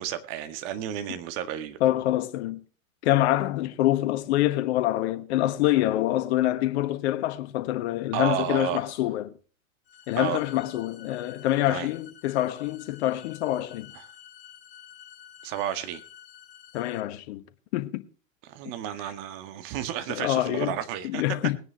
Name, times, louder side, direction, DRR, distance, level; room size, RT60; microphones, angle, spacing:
voice 1, 0.0-1.8 8.1-8.9 10.1-10.4 11.7-11.9 13.9-14.0 15.4-16.0 18.4-21.2, right 10 dB, 45° right, 1.8 m, -32 dB
voice 2, 1.8-2.6 3.0-9.3 10.1-13.9 16.7-17.4 17.7-18.0 20.1-20.8 21.0-21.6, left 14 dB, 55° left, 1.3 m, -26 dB
sound 1, 9.9-17.0, left 10 dB, 30° left, 3.1 m, -49 dB
20.0 x 9.9 x 2.9 m
hypercardioid pair, 105°, 40 cm